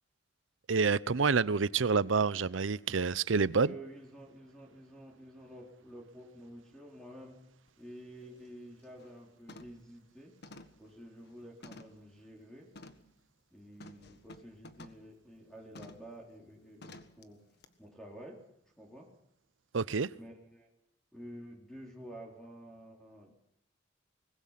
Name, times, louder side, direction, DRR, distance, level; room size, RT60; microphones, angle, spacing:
voice 1, 0.7-3.7 19.7-20.1, right 5 dB, 90° right, 0.7 m, -28 dB
voice 2, 3.6-7.4 7.8-10.3 10.8-12.7 13.5-17.4 17.8-18.4 18.8-19.1 20.1-20.7 21.1-23.4, equal, 5° left, 3.8 m, -50 dB
sound 1, 7.7-7.8 8.2-8.5 8.8-9.2 9.5-9.9 10.4-12.1 12.7-13.1 13.8-15.1 15.7-16.1 16.8-17.2 17.6-17.7, left 2 dB, 60° left, 1.6 m, -52 dB
23.5 x 20.5 x 5.9 m
head